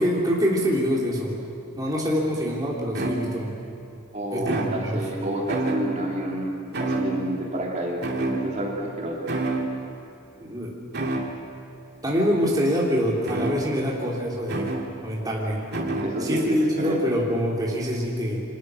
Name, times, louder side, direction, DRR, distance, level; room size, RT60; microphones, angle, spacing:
voice 1, 0.0-1.3 1.8-3.5 4.3-5.0 10.4-10.7 11.0-11.2 12.0-14.7 15.0-15.6 16.2-18.4, equal, 15° right, -4 dB, 3.4 m, -25 dB
sound 1, 2.9-3.6 4.4-5.2 5.5-6.2 6.7-7.5 8.0-8.9 9.3-9.8 10.9-11.5 13.2-14.0 14.5-15.0 15.7-16.3, right 2 dB, 50° right, 2.6 m, -29 dB
voice 2, 4.1-6.5 6.8-8.0 8.3-9.3 16.0-17.1, right 1 dB, 35° right, -3 dB, 3.4 m, -29 dB
29.5 x 25.5 x 6.4 m, 2.6 s
head